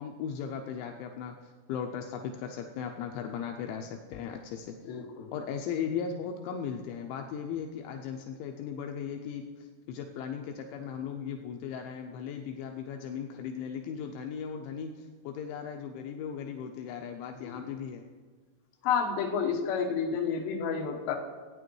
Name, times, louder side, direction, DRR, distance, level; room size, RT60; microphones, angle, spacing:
voice 1, 0.0-4.9 5.3-18.0, left 7 dB, 90° left, 4 dB, 2.6 m, -37 dB
voice 2, 4.8-5.3 17.4-17.7 18.8-21.1, left 6 dB, 70° left, 0 dB, 2.3 m, -30 dB
16.5 x 9.2 x 3.1 m, 1.5 s
omnidirectional pair, 5.8 m